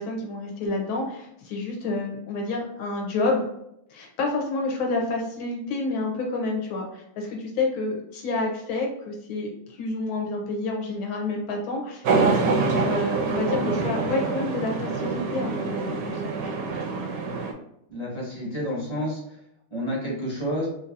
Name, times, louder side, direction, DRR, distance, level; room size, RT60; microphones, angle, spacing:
voice 1, 0.0-3.5 3.9-16.3, left 3 dB, 75° left, 0 dB, 1.6 m, -29 dB
sound 1, 12.0-17.5, right 4 dB, 75° right, 1.0 m, -26 dB
voice 2, 17.9-19.4 19.7-20.7, equal, 15° left, -6 dB, 1.0 m, -30 dB
3.9 x 2.7 x 2.6 m, 0.77 s
omnidirectional pair, 2.4 m